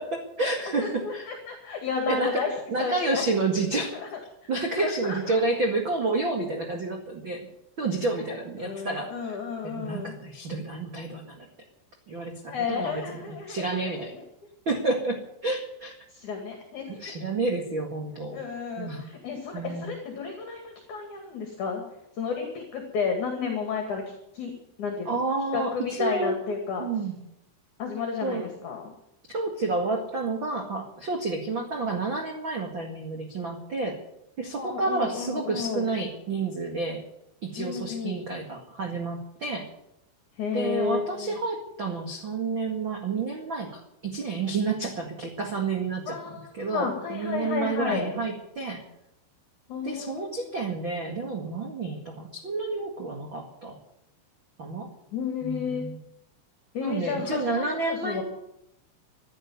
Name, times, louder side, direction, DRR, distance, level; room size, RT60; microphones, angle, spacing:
voice 1, 0.0-1.3 2.0-4.0 4.5-7.5 7.8-9.4 9.6-11.5 12.1-14.1 14.6-15.9 16.9-18.4 18.8-19.1 19.5-19.9 25.0-26.3 26.8-27.2 28.2-28.5 29.3-34.0 34.4-37.0 37.4-39.7 40.5-48.8 49.8-53.7 54.6-54.9 55.4-56.0 56.8-58.2, right 3 dB, 75° right, 2 dB, 1.1 m, -30 dB
voice 2, 0.8-2.5 2.8-3.2 3.8-4.1 4.8-5.4 8.6-10.2 12.5-14.0 16.1-17.2 18.3-21.8 22.1-24.5 24.8-25.2 25.5-26.8 27.8-28.9 34.5-35.9 37.6-38.2 40.4-41.4 46.1-48.1 49.7-50.4 55.1-55.9 56.7-58.2, left 6 dB, 50° left, 3 dB, 2.9 m, -32 dB
15.0 x 9.8 x 9.4 m, 0.81 s
omnidirectional pair, 5.6 m